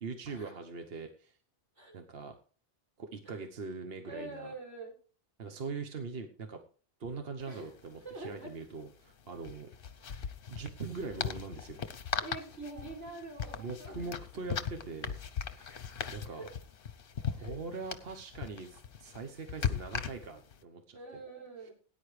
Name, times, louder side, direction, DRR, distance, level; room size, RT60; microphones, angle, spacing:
voice 1, 0.0-1.4 1.9-2.4 3.0-4.5 5.4-6.6 7.0-9.7 10.0-10.2 10.5-11.8 13.6-15.2 15.5-15.8 16.1-16.5 17.2-21.0 21.6-21.7, right 4 dB, 55° right, 5 dB, 1.2 m, -42 dB
voice 2, 4.0-4.9 7.5-7.7 8.0-8.5 12.2-14.2 16.3-16.5 17.4-17.5 20.9-21.7, right 2 dB, 75° right, -3 dB, 6.2 m, -45 dB
sound 1, 7.4-7.5 7.7-7.9 9.4-20.6, left 7 dB, 55° left, 0.9 m, -39 dB
18.0 x 9.9 x 3.2 m, 0.41 s
omnidirectional pair, 1.2 m